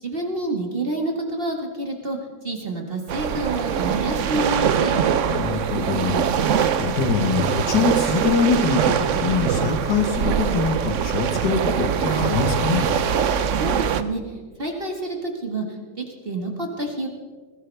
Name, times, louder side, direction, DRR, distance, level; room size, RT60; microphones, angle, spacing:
voice 1, 0.0-2.2 2.4-4.9 13.6-14.2 14.6-15.6 16.0-17.1, right 2 dB, 30° right, 1 dB, 1.9 m, -28 dB
sound 1, 3.1-14.0, right 8 dB, 65° right, 0.7 m, -23 dB
voice 2, 5.3-12.9, left 5 dB, 70° left, 4 dB, 2.0 m, -24 dB
21.0 x 15.5 x 3.5 m, 1.5 s
omnidirectional pair, 2.0 m